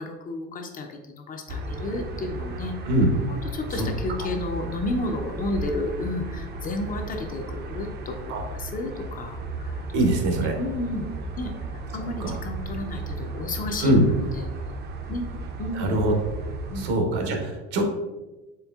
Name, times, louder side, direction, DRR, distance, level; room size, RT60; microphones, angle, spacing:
voice 1, 0.0-2.7 3.3-10.0 10.4-11.1 11.4-14.5 15.1-15.3 15.6-16.0 16.7-16.9, left 2 dB, 25° left, 3 dB, 0.4 m, -32 dB
sound 1, 1.5-16.9, right 2 dB, 30° right, 0.4 m, -35 dB
voice 2, 9.9-10.5 12.2-12.4 13.8-14.1 15.7-16.1 16.8-17.8, right 1 dB, 70° right, 3 dB, 0.9 m, -22 dB
4.3 x 3.1 x 2.3 m, 1.1 s
supercardioid pair, 100°, 33 cm